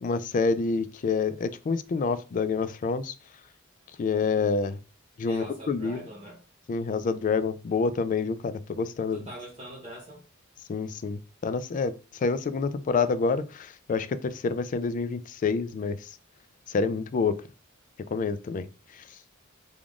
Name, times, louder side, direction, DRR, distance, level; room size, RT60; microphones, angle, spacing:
voice 1, 0.0-3.1 4.0-4.8 5.2-6.0 6.7-9.2 10.7-11.9 12.2-16.0 16.7-17.3 18.1-18.6, left 4 dB, 40° left, 0.3 m, -27 dB
voice 2, 5.2-6.4 9.1-10.2, right 1 dB, 30° right, 0.8 m, -43 dB
3.5 x 2.4 x 3.6 m
head